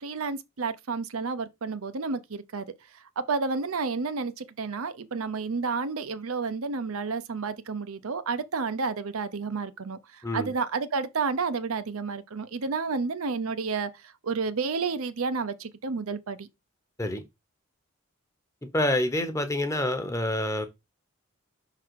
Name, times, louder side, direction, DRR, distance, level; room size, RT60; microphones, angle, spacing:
voice 1, 0.0-2.6 3.2-10.0 10.3-13.9 14.2-16.5, right 4 dB, 75° right, 0.7 m, -30 dB
voice 2, 18.7-20.7, left 1 dB, 15° left, 0.8 m, -27 dB
5.8 x 3.8 x 4.6 m
head